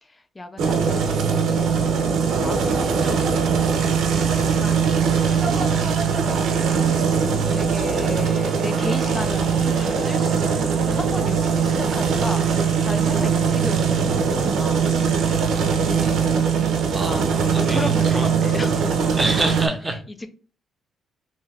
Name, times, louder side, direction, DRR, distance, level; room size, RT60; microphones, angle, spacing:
voice 1, 0.0-7.0 7.5-16.3 16.6-19.2, left 2 dB, 20° left, 0.4 m, -35 dB
sound 1, 0.6-19.7, right 6 dB, 75° right, 0.5 m, -21 dB
voice 2, 16.9-18.3 19.2-20.0, right 2 dB, 20° right, 0.6 m, -26 dB
2.7 x 2.3 x 3.2 m
cardioid pair, 90°, 0 cm